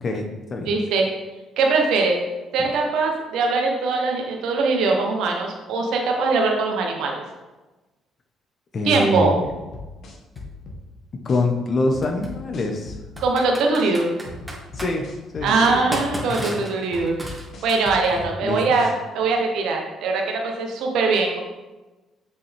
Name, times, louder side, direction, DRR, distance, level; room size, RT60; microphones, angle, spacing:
voice 1, 0.0-0.7 8.7-9.5 11.2-13.0 14.7-15.0 15.3-15.8 16.4-16.7 18.1-18.8, left 2 dB, 45° left, 4 dB, 1.2 m, -25 dB
voice 2, 0.7-1.0 1.6-2.2 2.5-7.2 8.8-9.3 13.2-14.1 15.4-21.4, right 3 dB, 75° right, 1 dB, 1.2 m, -22 dB
sound 1, 9.4-10.8 11.3-11.4 11.9-13.3 13.8-13.9 14.3-15.8 16.3-16.4 16.9-18.3 18.8-18.9, left 2 dB, 65° left, 1.5 m, -38 dB
Computer keyboard, 10.3-10.4 12.0-12.3 13.2-14.9 15.5-18.2, right 1 dB, 15° right, 2.0 m, -33 dB
6.8 x 6.1 x 3.6 m, 1.1 s
supercardioid pair, 60°, 0 cm